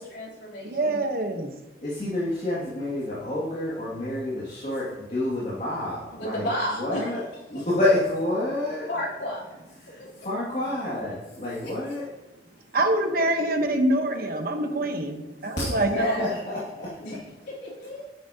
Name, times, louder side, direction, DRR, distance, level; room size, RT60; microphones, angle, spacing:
voice 1, 0.0-1.0 6.1-7.2 7.5-7.6 8.9-9.6 10.0-10.1 11.6-11.8 15.8-16.4 17.0-18.1, equal, 75° left, -6 dB, 3.4 m, -32 dB
voice 2, 0.6-1.5 12.7-16.2, right 1 dB, 55° right, 5 dB, 1.1 m, -25 dB
voice 3, 1.8-6.5 6.8-7.2 7.5-8.9 9.9-12.0 16.2-16.9, left 1 dB, 40° left, -8 dB, 2.3 m, -28 dB
10.0 x 8.4 x 2.9 m, 0.99 s
head